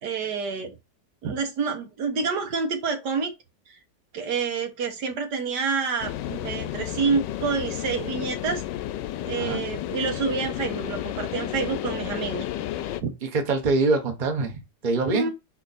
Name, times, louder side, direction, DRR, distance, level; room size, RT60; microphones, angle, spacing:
voice 1, 0.0-0.7 1.2-3.3 3.7-3.8 4.1-8.6 9.3-12.4 13.0-13.1 15.1-15.3, right 5 dB, 75° right, 1.7 m, -28 dB
sound 1, 6.0-13.0, left 12 dB, 90° left, 1.3 m, -32 dB
voice 2, 13.2-15.3, right 3 dB, 30° right, 1.2 m, -24 dB
5.1 x 4.4 x 4.1 m
omnidirectional pair, 1.8 m